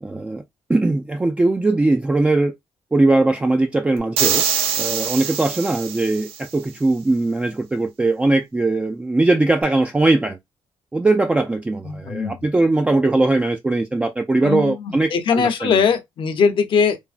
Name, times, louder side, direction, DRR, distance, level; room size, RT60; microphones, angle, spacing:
voice 1, 0.0-0.4 0.7-2.5 2.9-4.4 4.8-10.4 10.9-15.7, right 2 dB, 15° right, 0.3 m, -20 dB
sound 1, 4.2-6.4, right 7 dB, 85° right, 0.5 m, -23 dB
voice 2, 11.8-12.4 14.4-17.0, left 6 dB, 60° left, 0.7 m, -20 dB
3.3 x 2.0 x 2.4 m
cardioid pair, 80°, 10 cm